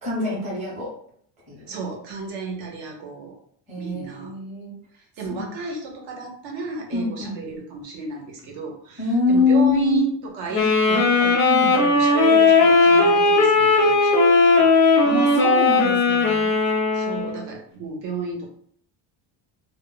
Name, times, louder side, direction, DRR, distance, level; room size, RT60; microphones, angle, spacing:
voice 1, 0.0-0.9 1.5-1.7 3.7-4.7 5.2-5.5 6.9-7.4 9.0-10.0 11.5-11.8 15.0-16.5, left 4 dB, 15° right, -6 dB, 0.7 m, -24 dB
voice 2, 1.7-3.3 3.8-4.3 5.2-9.0 9.3-14.7 16.9-18.5, right 5 dB, 65° right, 1 dB, 0.8 m, -32 dB
Wind instrument woodwind instrument, 10.5-17.5, left 3 dB, 25° left, 0.4 m, -17 dB
2.1 x 2.1 x 3.6 m, 0.63 s
cardioid pair, 180°, 48 cm